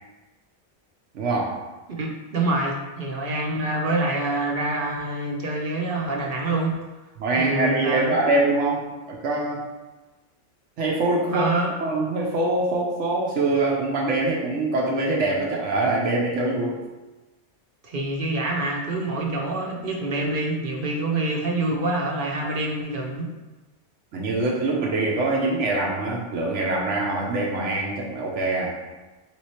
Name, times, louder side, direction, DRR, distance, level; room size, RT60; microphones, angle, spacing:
voice 1, 1.1-1.6 7.2-9.6 10.8-11.5 11.8-16.8 24.1-28.7, right 2 dB, 80° right, -2 dB, 1.0 m, -24 dB
voice 2, 1.9-6.7 7.3-8.2 11.3-11.7 17.8-23.3, right 2 dB, 50° right, -1 dB, 0.8 m, -26 dB
3.7 x 3.1 x 4.2 m, 1.1 s
omnidirectional pair, 1.2 m